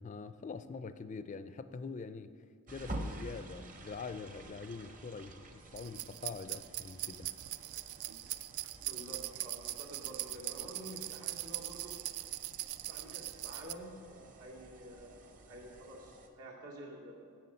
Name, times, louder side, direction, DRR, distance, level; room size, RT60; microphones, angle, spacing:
voice 1, 0.0-2.3 2.7-7.3, left 4 dB, 35° left, 12 dB, 0.3 m, -44 dB
sound 1, 2.7-16.3, right 1 dB, 35° right, 0.8 m, -50 dB
sound 2, 5.8-13.7, right 15 dB, 65° right, 0.3 m, -41 dB
voice 2, 8.8-12.3 12.8-17.4, right 1 dB, 85° right, -3 dB, 2.3 m, -49 dB
9.3 x 8.3 x 5.6 m, 2.4 s
head